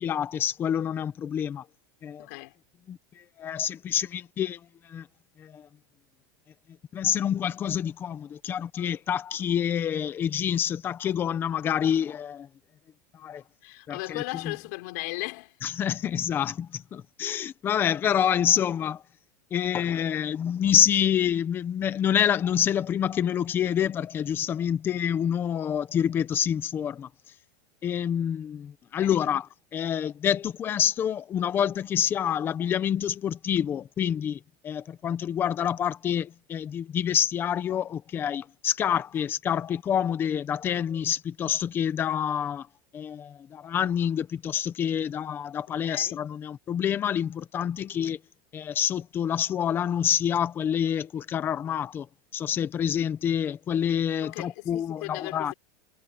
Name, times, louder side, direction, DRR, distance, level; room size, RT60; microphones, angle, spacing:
voice 1, 0.0-1.6 2.0-2.3 2.9-3.0 3.4-4.6 4.9-5.0 5.4-5.6 6.9-12.5 13.2-13.4 13.9-14.6 15.6-19.0 19.5-27.1 27.8-42.7 42.9-48.2 48.5-52.1 52.3-55.5, left 9 dB, 20° left, 1.0 m, -27 dB
voice 2, 2.2-2.5 13.6-15.6 29.0-29.1 45.7-46.2 54.2-55.5, left 25 dB, 60° left, 5.7 m, -37 dB
supercardioid pair, 165°, 10 cm